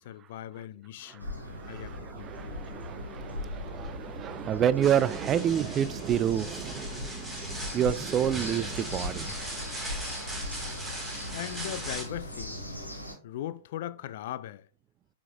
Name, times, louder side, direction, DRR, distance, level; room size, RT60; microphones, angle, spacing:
voice 1, 0.0-1.3 1.7-2.6 11.3-12.6 13.2-14.7, left 12 dB, 50° left, 0.4 m, -39 dB
voice 2, 1.1-9.4, right 9 dB, 25° right, 0.4 m, -29 dB
sound 1, 1.2-13.1, left 1 dB, 90° left, 2.9 m, -39 dB
sound 2, 4.8-12.0, right 1 dB, 5° right, 1.5 m, -39 dB
11.0 x 4.9 x 2.2 m
figure-of-eight pair, 105°, 0 cm